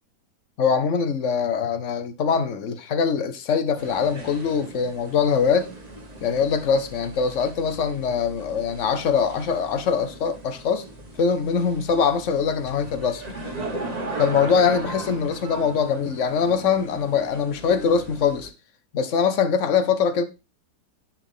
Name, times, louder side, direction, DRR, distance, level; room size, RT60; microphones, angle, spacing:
voice 1, 0.6-5.7 6.2-10.8 11.2-13.2 14.2-18.5 18.9-20.2, left 6 dB, 55° left, 1.0 m, -23 dB
sound 1, 3.8-18.5, right 2 dB, 25° right, 1.4 m, -38 dB
10.0 x 4.2 x 3.6 m
omnidirectional pair, 1.7 m